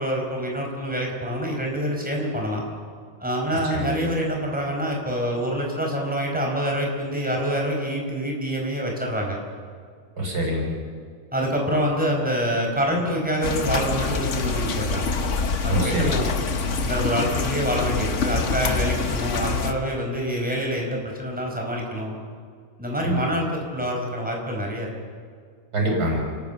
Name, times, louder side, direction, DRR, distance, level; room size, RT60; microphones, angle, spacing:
voice 1, 0.0-2.6 3.2-9.4 11.3-15.1 15.6-16.3 16.8-22.1 22.8-24.9, equal, 5° right, 0 dB, 4.9 m, -26 dB
voice 2, 10.2-10.8 15.7-16.2 23.0-23.2 25.7-26.2, equal, 85° right, 0 dB, 5.7 m, -24 dB
sound 1, 13.4-19.7, left 4 dB, 50° left, 1.4 m, -26 dB
29.0 x 18.0 x 7.0 m, 2.1 s
omnidirectional pair, 1.6 m